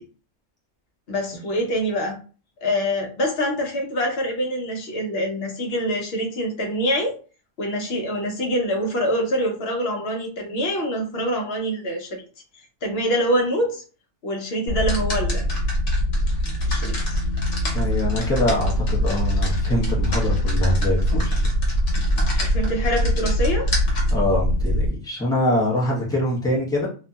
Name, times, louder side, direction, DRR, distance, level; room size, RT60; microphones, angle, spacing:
voice 1, 1.1-2.2 2.6-7.1 7.6-12.2 12.8-13.8 14.2-15.5 16.7-17.2 22.4-23.7, equal, 60° left, 3 dB, 0.9 m, -25 dB
sound 1, 14.7-24.9, equal, 85° left, 1.2 m, -22 dB
voice 2, 17.7-21.5 24.1-26.9, left 1 dB, 5° left, -5 dB, 0.7 m, -24 dB
2.6 x 2.6 x 2.3 m, 0.37 s
omnidirectional pair, 1.2 m